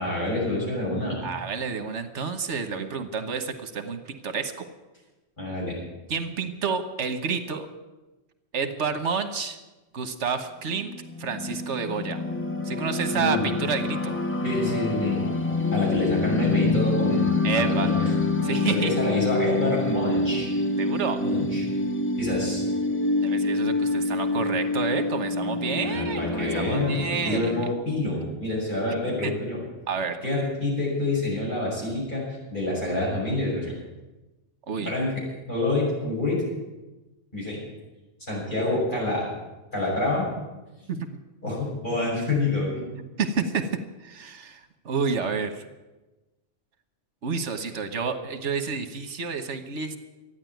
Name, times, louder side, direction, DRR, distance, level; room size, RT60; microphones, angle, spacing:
voice 1, 0.0-1.2 5.4-5.8 13.1-13.5 14.4-15.2 15.7-18.1 18.4-20.5 21.2-21.7 22.2-22.7 25.8-29.6 30.2-33.7 34.8-35.1 35.5-36.4 37.3-37.6 38.3-39.3 39.7-40.3 41.4-42.9, left 2 dB, 45° left, -5 dB, 6.9 m, -27 dB
voice 2, 1.2-4.6 6.1-7.7 8.5-9.6 9.9-10.9 11.2-12.2 12.6-14.2 17.4-17.9 18.4-18.9 20.8-21.2 23.2-27.5 29.2-29.3 29.9-30.2 34.7-34.9 40.9-41.1 43.2-45.6 47.2-50.0, right 5 dB, 85° right, 8 dB, 1.5 m, -29 dB
sound 1, 10.7-27.7, left 2 dB, 15° left, 0.6 m, -26 dB
13.5 x 9.8 x 9.2 m, 1.1 s
omnidirectional pair, 1.2 m